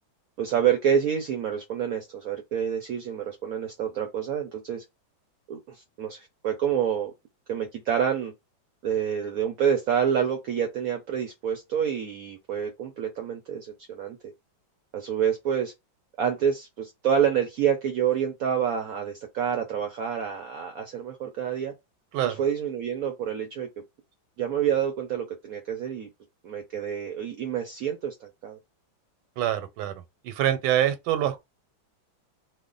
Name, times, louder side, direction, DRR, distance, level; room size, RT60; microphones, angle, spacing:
voice 1, 0.4-4.8 5.5-7.1 7.5-8.3 8.8-14.2 14.9-15.7 16.2-21.7 22.2-23.7 24.4-26.1 26.4-28.6, right 8 dB, 75° right, 0.8 m, -27 dB
voice 2, 29.4-29.9 30.2-31.4, right 11 dB, 90° right, 1.4 m, -25 dB
3.1 x 2.1 x 3.7 m
omnidirectional pair, 2.1 m